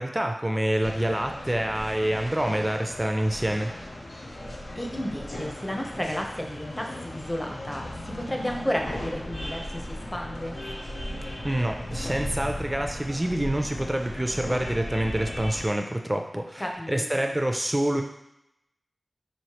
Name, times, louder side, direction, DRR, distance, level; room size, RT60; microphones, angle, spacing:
voice 1, 0.0-3.7 11.4-18.0, right 1 dB, 15° right, 4 dB, 0.4 m, -27 dB
sound 1, 0.8-15.7, left 1 dB, 90° left, 0.6 m, -37 dB
voice 2, 4.7-10.6 16.6-17.3, equal, 15° left, 1 dB, 0.7 m, -32 dB
4.1 x 3.1 x 2.9 m, 0.82 s
wide cardioid pair, 55°, 0 cm